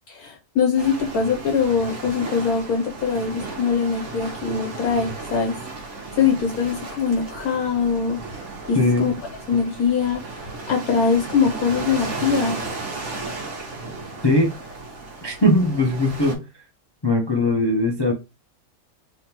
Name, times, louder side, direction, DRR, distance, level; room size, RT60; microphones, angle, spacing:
voice 1, 0.1-5.6 6.2-8.2 8.7-9.1 9.5-10.2 10.7-12.6, left 6 dB, 70° left, 1.2 m, -22 dB
sound 1, 0.8-16.3, right 3 dB, 50° right, 1.4 m, -34 dB
voice 2, 8.7-9.1 14.2-14.5 15.2-16.4 17.0-18.1, left 1 dB, 35° left, 0.4 m, -20 dB
3.4 x 3.4 x 2.9 m
omnidirectional pair, 1.7 m